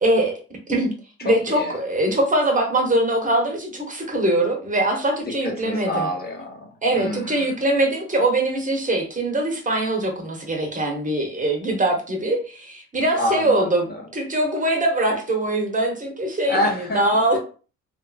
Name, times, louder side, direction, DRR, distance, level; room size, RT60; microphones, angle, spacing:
voice 1, 0.0-0.4 0.7-0.9 1.2-6.1 6.8-13.9 14.1-17.4, right 1 dB, 25° right, 2 dB, 0.9 m, -22 dB
voice 2, 1.2-1.8 5.4-7.5 13.2-14.1 16.5-17.4, left 1 dB, 30° left, 1 dB, 0.9 m, -28 dB
2.6 x 2.5 x 2.3 m, 0.38 s
cardioid pair, 90°, 30 cm